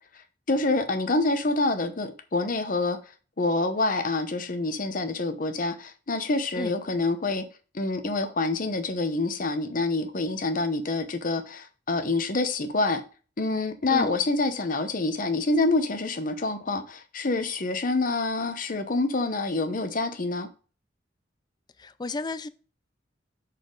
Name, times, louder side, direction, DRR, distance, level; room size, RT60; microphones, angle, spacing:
voice 1, 0.5-3.0 3.4-7.4 7.7-13.0 13.4-20.5, left 2 dB, 45° left, 0.8 m, -27 dB
voice 2, 21.8-22.5, left 3 dB, 20° left, 0.3 m, -32 dB
6.7 x 4.2 x 3.9 m
head